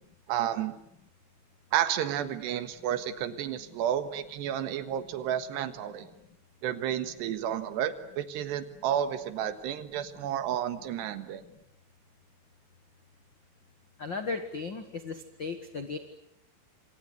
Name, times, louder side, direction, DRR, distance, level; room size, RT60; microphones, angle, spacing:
voice 1, 0.3-0.7 1.7-6.1 6.6-11.4, right 10 dB, 75° right, 12 dB, 3.5 m, -31 dB
voice 2, 14.0-16.0, left 4 dB, 75° left, 8 dB, 1.0 m, -36 dB
27.5 x 26.5 x 8.2 m, 0.74 s
omnidirectional pair, 5.0 m